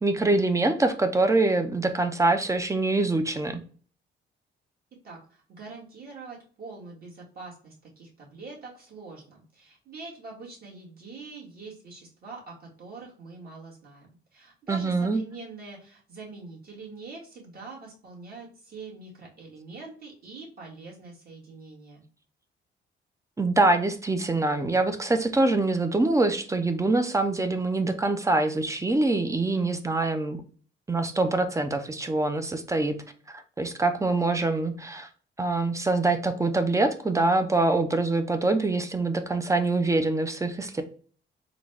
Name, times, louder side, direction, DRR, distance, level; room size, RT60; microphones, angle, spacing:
voice 1, 0.0-3.6 14.7-15.2 23.4-30.4 30.9-33.0 33.3-35.1 35.4-40.8, right 2 dB, 15° right, 8 dB, 0.5 m, -24 dB
voice 2, 5.5-14.1 14.3-22.0, right 3 dB, 50° right, -4 dB, 1.9 m, -44 dB
3.8 x 2.3 x 3.3 m, 0.42 s
cardioid pair, 90°, 20 cm